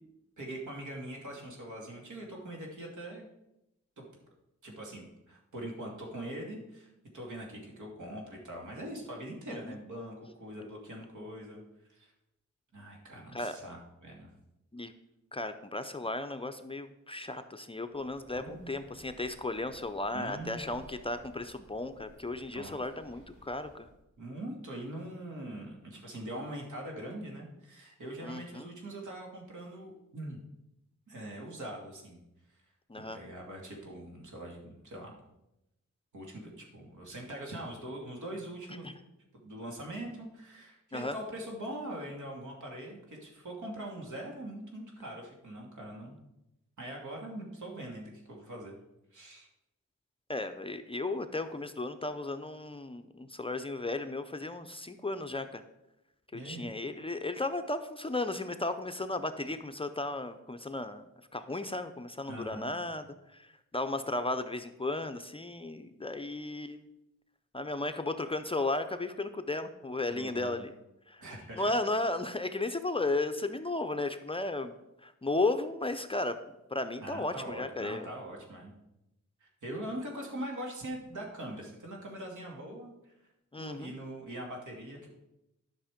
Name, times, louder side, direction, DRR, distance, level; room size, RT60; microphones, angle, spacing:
voice 1, 0.4-3.3 4.0-4.1 4.6-11.6 11.9-12.1 12.7-14.3 18.3-18.7 20.1-20.6 22.5-22.8 24.2-30.4 31.1-32.2 33.0-35.2 36.1-38.9 39.4-46.2 46.8-48.7 49.1-49.5 56.3-56.7 59.4-59.5 62.3-62.7 70.1-70.6 71.2-71.7 77.0-78.7 79.4-83.1 83.6-85.1, right 1 dB, 80° right, -1 dB, 2.6 m, -42 dB
voice 2, 15.3-23.9 28.2-28.7 32.9-33.2 38.8-38.9 40.9-41.2 50.3-55.6 56.3-61.0 61.3-63.0 63.3-66.8 67.5-70.7 71.1-71.2 71.5-76.4 76.7-78.1 83.5-84.0, left 2 dB, 20° left, 8 dB, 0.4 m, -35 dB
Breathing, 17.9-24.0, equal, 25° right, 4.4 m, -58 dB
11.5 x 6.0 x 5.0 m, 0.89 s
wide cardioid pair, 170°, 29 cm